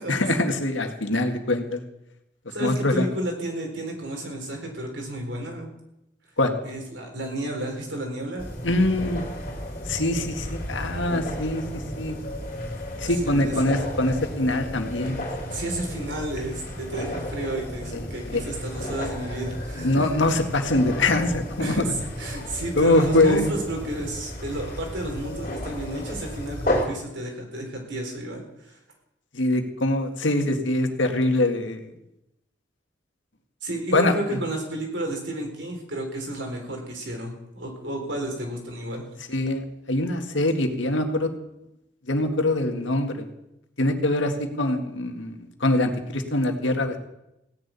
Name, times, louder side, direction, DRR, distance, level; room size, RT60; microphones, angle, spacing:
voice 1, 0.1-1.8 2.6-3.1 6.4-6.5 8.6-9.2 9.9-12.2 13.0-15.6 17.9-18.4 19.8-21.8 22.8-23.5 29.3-31.8 33.9-34.4 39.3-39.6 39.9-41.3 42.1-43.3 43.8-47.0, left 2 dB, 90° left, 5 dB, 1.9 m, -23 dB
voice 2, 2.5-5.7 6.6-8.5 13.0-13.5 15.5-20.0 21.6-21.9 22.2-28.8 33.6-39.0, right 1 dB, 80° right, 2 dB, 4.2 m, -32 dB
sound 1, 8.4-26.9, equal, 45° left, 3.3 m, -33 dB
16.5 x 6.9 x 9.6 m, 0.88 s
head